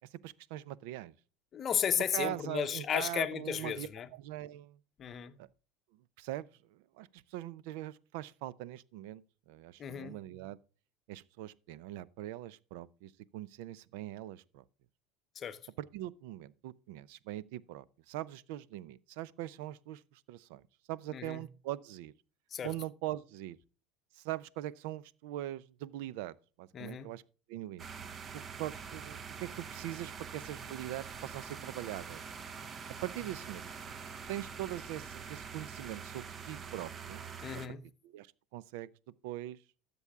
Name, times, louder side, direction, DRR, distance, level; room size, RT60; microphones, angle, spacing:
voice 1, 0.1-1.1 2.1-4.8 5.4-5.5 6.2-10.6 11.1-14.6 15.9-20.6 20.9-22.1 22.6-23.6 24.2-27.2 27.5-27.8 28.3-32.2 33.0-33.8 34.3-37.2 38.0-38.3 38.5-38.9 39.2-39.6, right 14 dB, 75° right, 0.5 m, -42 dB
voice 2, 1.5-4.1 5.0-5.3 9.8-10.2 15.4-15.6 21.1-21.4 22.5-22.7 26.7-27.1 37.4-37.8, left 8 dB, 35° left, 0.8 m, -34 dB
sound 1, 27.8-37.7, right 6 dB, 30° right, 0.8 m, -45 dB
13.0 x 6.9 x 3.6 m
supercardioid pair, 135°, 0 cm